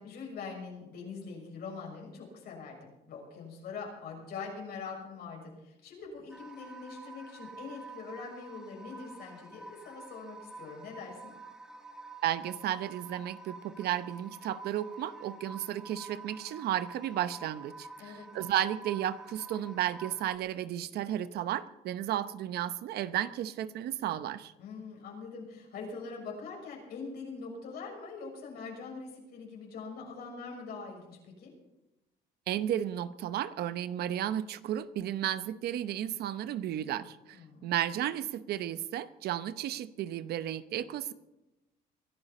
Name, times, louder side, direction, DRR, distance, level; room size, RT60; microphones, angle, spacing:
voice 1, 0.0-11.3 18.0-18.3 24.6-31.5 37.3-37.7, left 4 dB, 70° left, 0 dB, 6.6 m, -43 dB
sound 1, 6.3-20.4, right 3 dB, 5° right, 2.0 m, -48 dB
voice 2, 12.2-24.5 32.5-41.1, right 11 dB, 70° right, 14 dB, 0.8 m, -33 dB
23.5 x 12.0 x 4.3 m, 0.96 s
cardioid pair, 110°, 17 cm